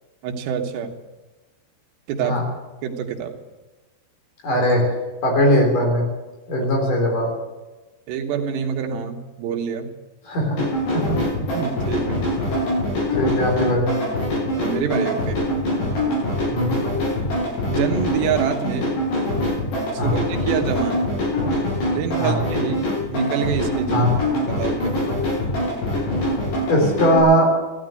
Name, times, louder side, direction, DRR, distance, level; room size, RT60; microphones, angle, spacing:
voice 1, 0.2-1.0 2.1-2.4 2.8-3.4 6.6-6.7 8.1-9.9 11.4-12.2 14.5-15.5 15.8-16.2 17.7-18.9 19.9-21.0 21.9-24.1 24.5-25.0, right 7 dB, 90° right, 3 dB, 3.6 m, -27 dB
voice 2, 4.4-4.9 5.2-6.0 6.5-7.3 10.3-10.6 13.2-13.9 16.5-16.7 20.0-20.2 22.2-22.4 23.9-24.1 26.7-27.6, equal, 50° left, 1 dB, 5.6 m, -19 dB
sound 1, 10.6-27.2, left 1 dB, 85° left, 8.3 m, -24 dB
15.0 x 12.5 x 7.8 m, 1.2 s
omnidirectional pair, 4.8 m